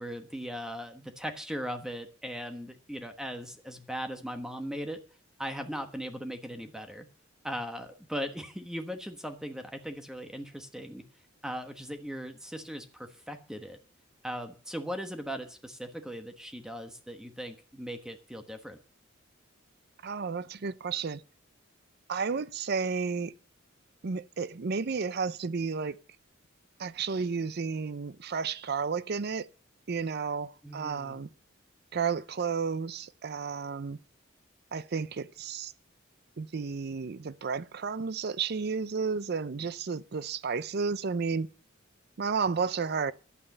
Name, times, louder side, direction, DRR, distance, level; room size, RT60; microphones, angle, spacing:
voice 1, 0.0-5.0 5.4-7.1 7.4-11.0 11.4-13.8 14.2-18.8 30.6-31.2, equal, 5° right, 1.2 m, -38 dB
voice 2, 20.0-21.2 22.1-23.3 24.0-26.0 26.8-29.5 29.9-31.3 31.9-34.0 34.7-35.7 36.4-41.5 42.2-43.1, right 5 dB, 50° right, 0.5 m, -32 dB
11.0 x 8.8 x 6.5 m
head